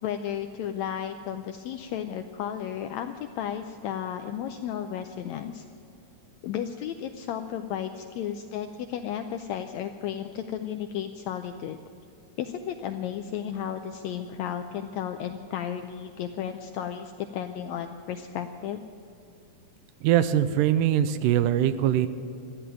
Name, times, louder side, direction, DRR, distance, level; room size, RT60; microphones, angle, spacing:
voice 1, 0.0-5.6 6.4-11.8 12.4-18.9, left 9 dB, 85° left, 6 dB, 1.6 m, -33 dB
voice 2, 20.0-22.1, right 11 dB, 85° right, 12 dB, 2.2 m, -22 dB
14.0 x 10.0 x 9.0 m, 2.6 s
omnidirectional pair, 3.7 m